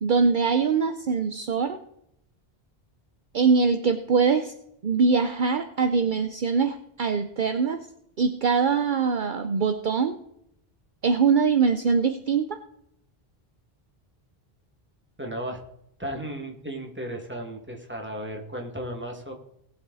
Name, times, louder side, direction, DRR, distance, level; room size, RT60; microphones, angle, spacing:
voice 1, 0.0-1.8 3.3-4.5 4.8-7.8 8.2-10.2 11.0-12.6, right 5 dB, 55° right, 9 dB, 0.8 m, -23 dB
voice 2, 15.2-15.6 16.0-19.3, right 1 dB, 10° right, 1 dB, 2.2 m, -35 dB
19.0 x 7.3 x 4.1 m, 0.76 s
omnidirectional pair, 1.1 m